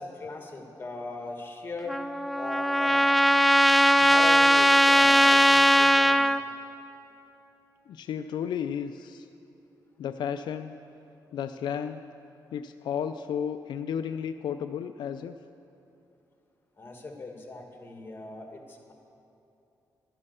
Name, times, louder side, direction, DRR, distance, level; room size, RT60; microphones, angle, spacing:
voice 1, 0.0-2.1 2.4-3.1 4.0-6.3 16.8-18.9, left 2 dB, 30° left, 2 dB, 2.1 m, -39 dB
Trumpet, 1.9-6.4, equal, ahead, 0.4 m, -20 dB
voice 2, 3.6-4.1 7.9-9.3 10.0-10.8 11.3-12.0 12.5-15.4, left 8 dB, 80° left, 9 dB, 0.4 m, -33 dB
12.0 x 11.0 x 6.9 m, 2.8 s
cardioid pair, 85°, 8 cm